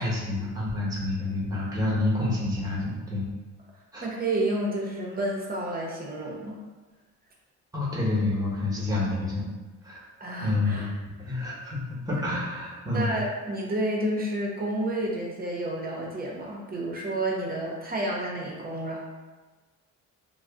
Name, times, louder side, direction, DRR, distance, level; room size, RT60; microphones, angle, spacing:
voice 1, 0.0-3.3 3.9-4.1 7.7-9.4 9.8-10.0 10.4-10.9 11.2-13.1, left 2 dB, 10° right, -6 dB, 1.0 m, -28 dB
voice 2, 4.0-6.6 10.2-10.9 12.9-19.0, right 1 dB, 30° right, -2 dB, 0.7 m, -30 dB
2.4 x 2.0 x 3.5 m, 1.2 s
cardioid pair, 90°, 30 cm